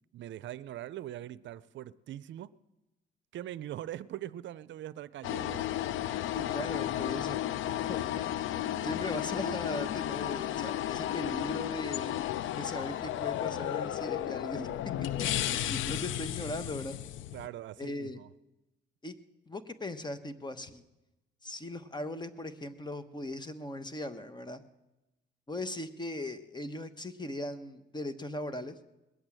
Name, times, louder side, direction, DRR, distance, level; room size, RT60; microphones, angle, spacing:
voice 1, 0.1-2.5 3.3-5.7 17.3-18.3, right 12 dB, 70° right, 0.5 m, -42 dB
sound 1, 5.2-17.5, left 12 dB, 75° left, 0.5 m, -33 dB
voice 2, 6.3-12.1 12.6-14.7 15.0-15.1 15.5-17.0 17.8-18.2 19.0-19.2 19.5-20.8 21.4-24.6 25.5-28.7, left 1 dB, 20° left, 1.2 m, -39 dB
20.0 x 8.0 x 8.9 m
cardioid pair, 90°, 20 cm